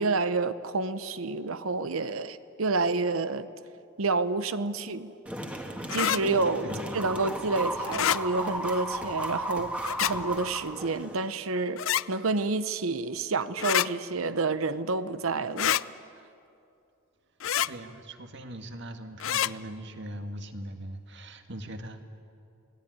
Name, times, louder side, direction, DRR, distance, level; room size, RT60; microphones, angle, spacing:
voice 1, 0.0-3.5 4.0-5.1 5.9-11.8 12.1-15.8, right 3 dB, 85° right, 0.9 m, -29 dB
sound 1, 5.3-11.3, right 1 dB, 5° right, 1.8 m, -35 dB
sound 2, 5.9-6.2 7.9-8.2 9.8-10.1 11.8-12.0 13.6-13.9 15.6-15.8 17.4-17.7 19.2-19.5, left 10 dB, 70° left, 0.5 m, -26 dB
voice 2, 17.6-22.0, right 1 dB, 60° right, 1.8 m, -40 dB
27.0 x 19.0 x 9.5 m
head